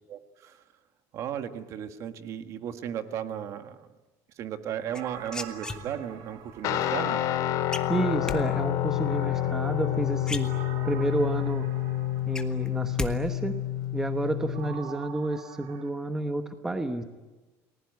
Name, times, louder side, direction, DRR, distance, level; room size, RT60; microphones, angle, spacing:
voice 1, 0.1-0.6 1.1-3.9 4.4-7.2, right 9 dB, 45° right, 9 dB, 1.6 m, -35 dB
sound 1, 4.9-6.2 7.7-8.4 9.8-9.9 10.2-11.0 11.5-11.6 11.9-13.1 13.4-13.9, left 3 dB, 10° left, 1.3 m, -36 dB
sound 2, 4.9-7.8 9.0-12.9 14.5-15.9, right 8 dB, 65° right, 3.2 m, -46 dB
Guitar, 6.6-14.8, left 13 dB, 50° left, 2.4 m, -29 dB
voice 2, 7.9-10.5 10.8-11.7 12.3-13.6 13.9-17.0, right 2 dB, 5° right, 7 dB, 1.1 m, -30 dB
30.0 x 20.0 x 9.5 m, 1.2 s
cardioid pair, 180°, 7 cm